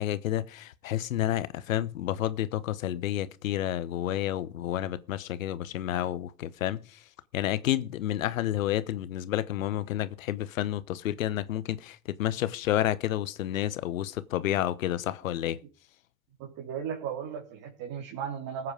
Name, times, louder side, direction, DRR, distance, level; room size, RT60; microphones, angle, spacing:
voice 1, 0.0-7.0 7.3-15.6, left 13 dB, 80° left, 1.1 m, -30 dB
voice 2, 16.4-18.7, right 8 dB, 55° right, 3.8 m, -36 dB
20.0 x 8.3 x 5.0 m
hypercardioid pair, 80°, 40 cm